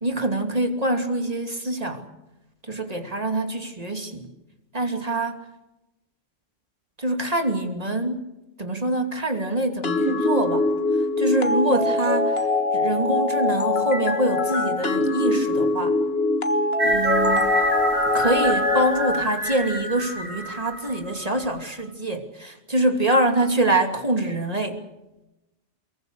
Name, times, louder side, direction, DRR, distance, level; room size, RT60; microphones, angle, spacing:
voice 1, 0.0-2.1 2.6-4.3 4.7-5.5 7.0-8.2 8.6-10.7 11.0-16.0 16.8-17.5 18.1-24.8, right 1 dB, 30° right, 5 dB, 2.9 m, -25 dB
sound 1, 9.8-19.2, left 2 dB, 55° left, 1.9 m, -23 dB
sound 2, 16.8-21.5, right 2 dB, 85° right, 3.4 m, -27 dB
24.0 x 22.5 x 6.6 m, 0.96 s
omnidirectional pair, 1.3 m